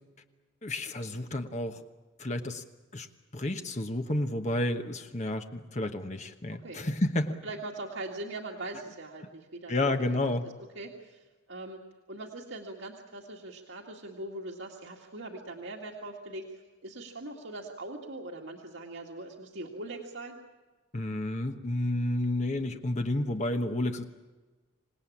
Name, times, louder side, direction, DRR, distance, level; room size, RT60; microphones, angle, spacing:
voice 1, 0.6-1.8 2.2-2.6 2.9-3.1 3.3-7.4 9.7-10.4 20.9-24.0, left 1 dB, 35° left, 6 dB, 1.1 m, -30 dB
voice 2, 6.5-6.8 7.4-11.8 12.1-20.4, right 2 dB, 70° right, -1 dB, 2.1 m, -41 dB
26.5 x 19.0 x 8.6 m, 1.3 s
head